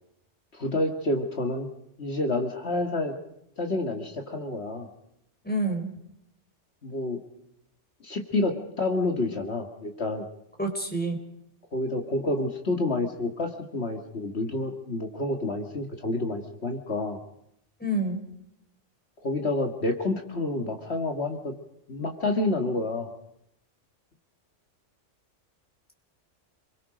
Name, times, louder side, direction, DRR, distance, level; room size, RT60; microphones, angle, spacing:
voice 1, 0.5-1.7 2.0-3.2 3.6-4.9 6.8-7.2 8.0-10.2 11.7-17.2 19.2-21.5 21.9-23.1, left 2 dB, 60° left, 4 dB, 2.1 m, -29 dB
voice 2, 5.4-5.9 10.6-11.2 17.8-18.2, right 1 dB, 5° left, 3 dB, 4.1 m, -27 dB
28.5 x 22.5 x 5.1 m, 0.79 s
omnidirectional pair, 1.2 m